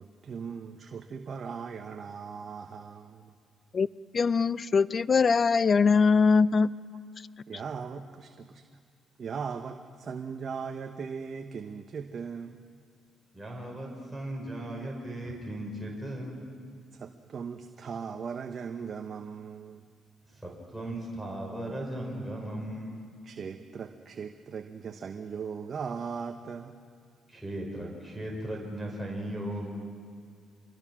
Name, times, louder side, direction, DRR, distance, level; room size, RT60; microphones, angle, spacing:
voice 1, 0.0-3.3 7.5-8.6 9.2-12.6 16.9-19.8 23.2-26.7, right 6 dB, 50° right, 5 dB, 1.1 m, -38 dB
voice 2, 4.1-6.7, left 5 dB, 40° left, 18 dB, 0.5 m, -22 dB
voice 3, 13.3-16.4 20.3-23.2 27.3-29.7, right 1 dB, ahead, -3 dB, 5.5 m, -37 dB
26.0 x 21.5 x 6.2 m, 2.1 s
cardioid pair, 90°, 0 cm